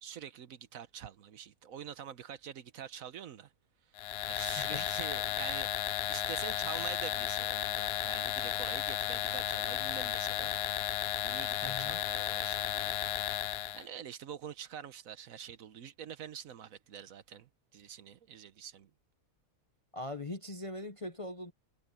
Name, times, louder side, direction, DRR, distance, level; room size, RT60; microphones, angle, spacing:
voice 1, 0.0-3.5 4.3-10.5 11.2-12.9 13.7-18.9, right 9 dB, 70° right, 1.2 m, -45 dB
sound 1, 4.0-13.8, left 12 dB, 70° left, 0.6 m, -34 dB
voice 2, 11.6-12.0 19.9-21.5, left 2 dB, 30° left, 0.7 m, -41 dB
omnidirectional pair, 1.6 m